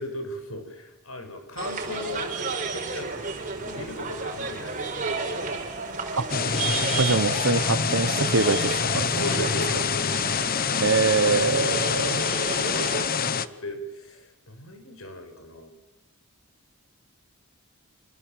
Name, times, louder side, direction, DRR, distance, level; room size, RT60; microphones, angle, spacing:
voice 1, 0.0-2.3 2.7-3.2 3.6-5.1 9.0-10.5 11.2-15.7, left 1 dB, 70° left, 6 dB, 6.5 m, -37 dB
sound 1, 1.6-13.1, right 4 dB, 35° right, 5.0 m, -32 dB
sound 2, 6.3-13.5, left 6 dB, 40° left, 1.0 m, -26 dB
voice 2, 7.0-9.2 10.8-12.2, right 4 dB, 60° right, 16 dB, 1.1 m, -24 dB
27.0 x 26.5 x 7.8 m, 0.99 s
head